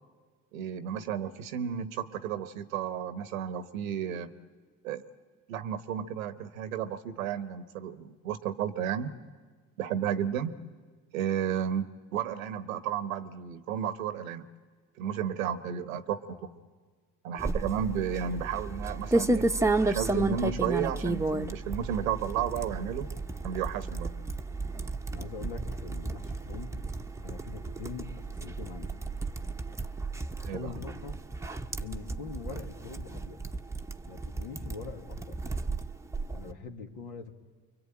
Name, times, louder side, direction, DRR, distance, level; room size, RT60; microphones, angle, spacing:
voice 1, 0.5-4.3 4.8-5.0 5.5-9.1 9.8-10.5 11.1-14.5 15.0-16.4 17.2-19.5 19.8-23.1 23.4-24.1 30.4-30.7, right 9 dB, 90° right, 12 dB, 1.2 m, -32 dB
sound 1, 17.4-36.5, right 2 dB, 5° right, 0.9 m, -33 dB
voice 2, 25.1-26.7 27.2-28.9 30.5-31.2 31.8-33.4 34.1-35.4 36.3-37.3, left 5 dB, 70° left, 3 dB, 2.5 m, -43 dB
26.0 x 23.0 x 8.9 m, 1.4 s
hypercardioid pair, 65°, 40 cm